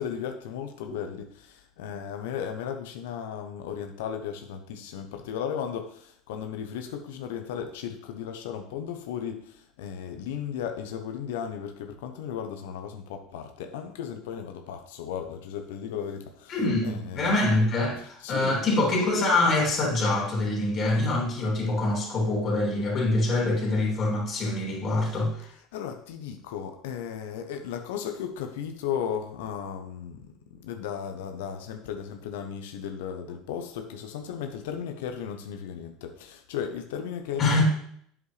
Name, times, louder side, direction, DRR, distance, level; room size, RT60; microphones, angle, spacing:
voice 1, 0.0-16.6 16.8-17.5 18.2-18.6 25.7-37.6, left 8 dB, 75° left, 5 dB, 0.8 m, -35 dB
voice 2, 16.5-25.5 37.4-37.6, left 2 dB, 40° left, -1 dB, 3.1 m, -25 dB
8.2 x 7.3 x 3.3 m, 0.66 s
hypercardioid pair, 85°, 0 cm